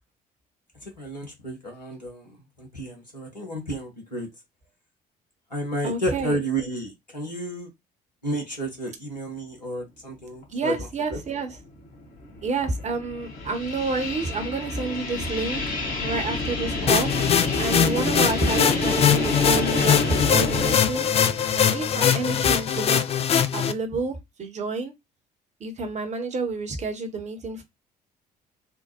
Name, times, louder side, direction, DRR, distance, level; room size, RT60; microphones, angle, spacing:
voice 1, 0.8-4.3 5.5-7.7 8.2-11.2, right 1 dB, 90° left, 0.8 m, -32 dB
voice 2, 5.8-6.4 10.5-11.6 12.4-15.6 16.0-17.1 17.6-21.1 21.5-23.0 23.5-24.9 25.6-27.6, right 3 dB, 35° right, 0.9 m, -29 dB
sound 1, 10.4-10.5 11.1-20.8, left 2 dB, 45° left, 1.2 m, -29 dB
sound 2, 16.9-23.7, left 8 dB, 30° left, 0.4 m, -22 dB
3.4 x 2.2 x 2.8 m
figure-of-eight pair, 50°, 21 cm